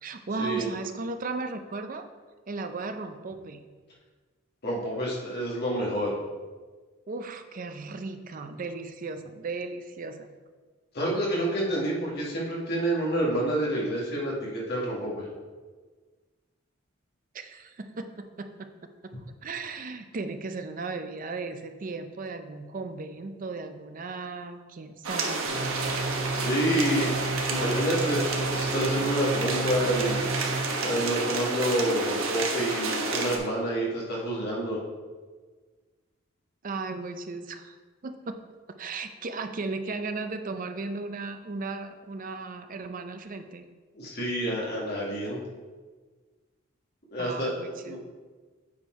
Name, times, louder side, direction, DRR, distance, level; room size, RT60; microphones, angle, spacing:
voice 1, 0.0-2.1 2.5-3.6 7.1-10.3 17.3-19.1 19.4-25.5 36.6-37.8 38.0-38.4 38.8-43.6 47.2-48.0, right 3 dB, 40° right, 8 dB, 0.5 m, -36 dB
voice 2, 4.6-6.2 10.9-15.3 26.3-27.1 27.4-30.2 30.8-34.8 43.9-45.4 47.1-47.5 47.9-48.0, right 1 dB, 55° left, -5 dB, 2.1 m, -28 dB
sound 1, 25.0-33.4, right 3 dB, 90° right, 1.1 m, -30 dB
sound 2, 25.4-30.6, right 3 dB, ahead, 1.0 m, -32 dB
8.5 x 4.4 x 4.6 m, 1.4 s
head